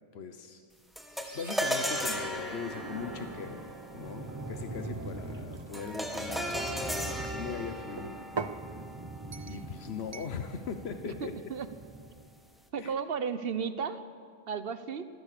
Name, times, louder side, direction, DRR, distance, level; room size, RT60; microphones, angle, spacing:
voice 1, 0.1-0.6 1.3-3.6 3.9-8.2 9.5-11.3 12.8-12.9, left 6 dB, 90° left, 7 dB, 1.3 m, -40 dB
sound 1, 1.0-10.4, equal, ahead, 1.7 m, -37 dB
sound 2, 1.2-12.4, right 2 dB, 20° right, 0.9 m, -43 dB
sound 3, 5.1-7.4 8.0-8.7 9.3-9.7 10.1-10.4, right 5 dB, 35° right, 0.5 m, -42 dB
voice 2, 11.0-11.7 12.7-14.0 14.5-15.1, right 6 dB, 65° right, 12 dB, 1.1 m, -34 dB
24.5 x 16.0 x 6.8 m, 2.2 s
omnidirectional pair, 1.0 m